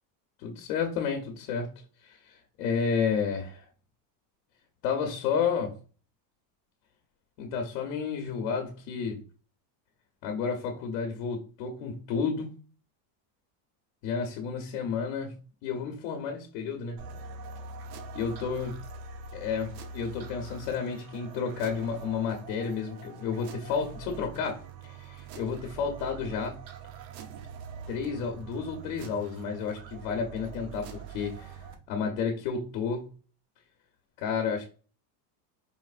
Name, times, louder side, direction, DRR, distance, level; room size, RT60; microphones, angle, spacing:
voice 1, 0.4-1.7 2.0-3.7 4.8-5.7 7.4-9.2 10.2-12.5 14.0-15.4 15.6-17.0 18.1-18.7 19.3-26.6 27.9-31.6 31.9-33.1 34.2-34.7, left 6 dB, 85° left, 2 dB, 1.0 m, -31 dB
sound 1, 17.0-31.8, right 4 dB, 90° right, 0.9 m, -43 dB
4.6 x 3.3 x 2.5 m, 0.36 s
cardioid pair, 165°, 49 cm